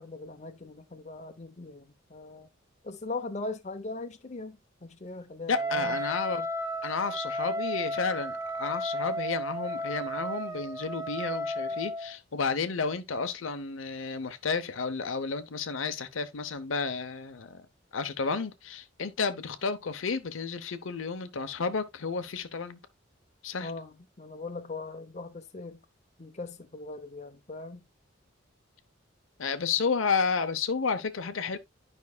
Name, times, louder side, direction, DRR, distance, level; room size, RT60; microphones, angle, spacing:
voice 1, 0.0-2.5 2.8-6.0 23.6-25.8 26.2-27.9, left 3 dB, 35° left, 0.7 m, -40 dB
voice 2, 5.5-6.5 6.8-17.7 17.9-22.8 23.4-23.8 29.4-31.6, left 5 dB, 80° left, 0.7 m, -31 dB
Wind instrument woodwind instrument, 5.5-12.2, right 1 dB, 15° right, 0.8 m, -33 dB
10.5 x 5.3 x 2.2 m
head